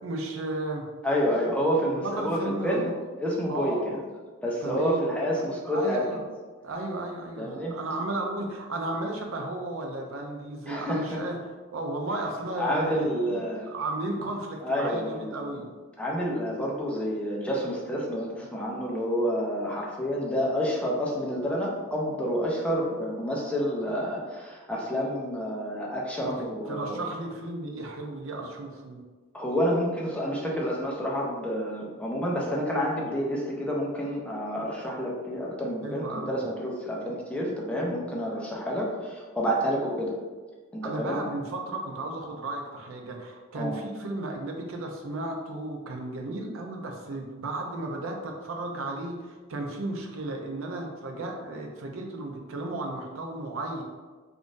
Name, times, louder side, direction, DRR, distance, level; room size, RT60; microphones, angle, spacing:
voice 1, 0.0-0.9 1.9-3.0 3.5-4.0 4.6-6.2 6.6-11.4 11.7-15.6 26.2-29.0 35.8-36.4 40.8-53.8, right 2 dB, 70° right, 2 dB, 0.5 m, -34 dB
voice 2, 1.0-2.9 3.2-4.0 4.4-6.0 7.4-7.7 10.7-11.2 12.6-13.7 14.6-15.6 16.0-27.0 29.3-40.1 40.7-41.2 43.5-43.8, equal, 5° left, -3 dB, 0.5 m, -29 dB
3.6 x 2.5 x 2.5 m, 1.4 s
head